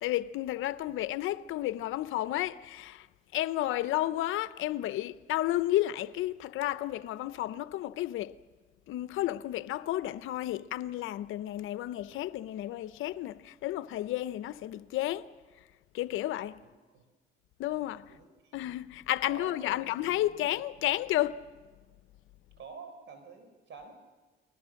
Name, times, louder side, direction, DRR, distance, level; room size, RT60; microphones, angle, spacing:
voice 1, 0.0-3.1 3.3-8.4 8.9-15.3 15.9-16.5 17.6-18.1 18.5-21.4, left 14 dB, 85° left, 0.7 m, -32 dB
voice 2, 18.1-18.5 19.2-19.8 22.6-23.9, right 5 dB, 70° right, 4.7 m, -48 dB
30.0 x 21.0 x 6.4 m
cardioid pair, 90°, 20 cm